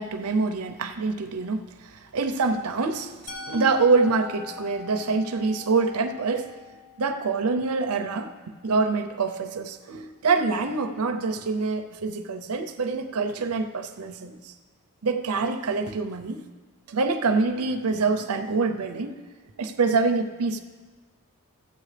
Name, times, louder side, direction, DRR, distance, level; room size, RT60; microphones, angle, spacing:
voice 1, 0.0-3.2 3.5-6.5 7.0-8.3 8.6-14.5 15.0-16.4 16.9-19.2 19.6-20.6, right 4 dB, 85° right, 7 dB, 0.6 m, -25 dB
Musical instrument, 3.3-9.2, left 5 dB, 70° left, 1.5 m, -43 dB
15.0 x 7.7 x 3.3 m, 1.4 s
head